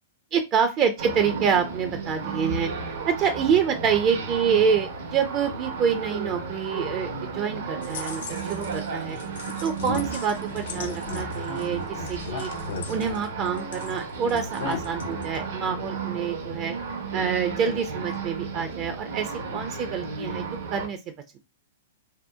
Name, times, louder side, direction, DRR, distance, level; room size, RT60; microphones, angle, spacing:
voice 1, 0.3-9.2 9.6-12.5 12.9-16.7 17.1-21.0, right 7 dB, 35° right, 7 dB, 0.4 m, -26 dB
sound 1, 1.0-20.9, right 4 dB, 70° right, 0.7 m, -34 dB
sound 2, 7.8-8.8 9.2-14.0 14.3-15.4, left 4 dB, 65° left, 0.5 m, -36 dB
2.6 x 2.1 x 2.2 m, 0.26 s
hypercardioid pair, 120°, 0 cm